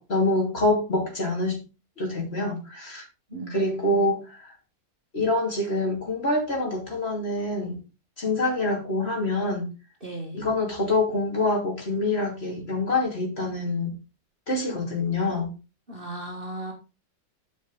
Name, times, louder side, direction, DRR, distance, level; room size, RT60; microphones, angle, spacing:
voice 1, 0.0-1.6 2.0-3.0 3.5-4.5 5.1-7.8 8.2-9.7 10.3-13.9 14.5-15.5, left 2 dB, 30° left, -1 dB, 3.2 m, -26 dB
voice 2, 3.3-4.1 10.0-10.4 15.9-16.7, right 1 dB, 30° right, -1 dB, 2.1 m, -37 dB
12.0 x 5.7 x 4.1 m, 0.30 s
omnidirectional pair, 2.1 m